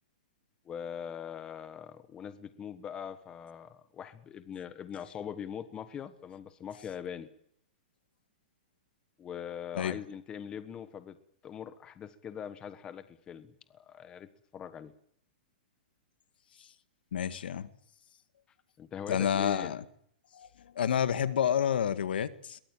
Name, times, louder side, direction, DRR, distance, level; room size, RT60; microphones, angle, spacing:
voice 1, 0.6-7.3 9.2-14.9 18.8-19.7, left 8 dB, 15° left, 1.3 m, -42 dB
voice 2, 17.1-17.7 19.1-19.8 20.3-22.6, left 8 dB, 80° left, 1.9 m, -29 dB
22.5 x 21.0 x 9.1 m
hypercardioid pair, 160°, 5 cm